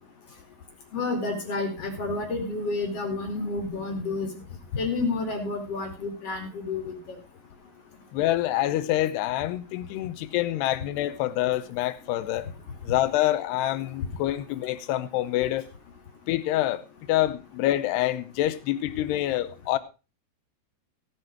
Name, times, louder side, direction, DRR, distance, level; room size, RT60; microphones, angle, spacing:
voice 1, 0.9-4.3 4.7-6.9, left 3 dB, 40° left, 3.0 m, -30 dB
voice 2, 8.1-12.5 12.8-15.7 16.3-16.8 17.1-19.8, left 14 dB, 85° left, 2.8 m, -26 dB
16.5 x 7.8 x 4.5 m
omnidirectional pair, 4.8 m